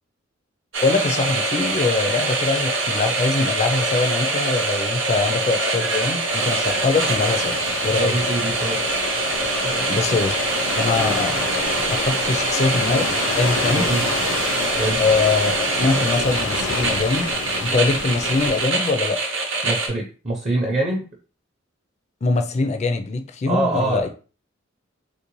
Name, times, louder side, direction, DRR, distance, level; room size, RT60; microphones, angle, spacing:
sound 1, 0.7-19.9, right 2 dB, 70° right, 0.8 m, -24 dB
voice 1, 0.8-7.6 7.8-8.2 9.9-10.4 10.8-11.4 11.9-13.0 13.4-13.9 15.0-17.3 17.6-19.2 22.2-24.1, left 3 dB, 35° left, 0.4 m, -22 dB
sound 2, 5.8-18.7, left 4 dB, 85° left, 0.5 m, -29 dB
voice 2, 7.9-8.8 9.6-9.9 13.7-14.1 14.8-15.0 19.6-21.0 23.5-24.1, right 2 dB, 35° right, 0.6 m, -24 dB
3.2 x 2.5 x 3.0 m
head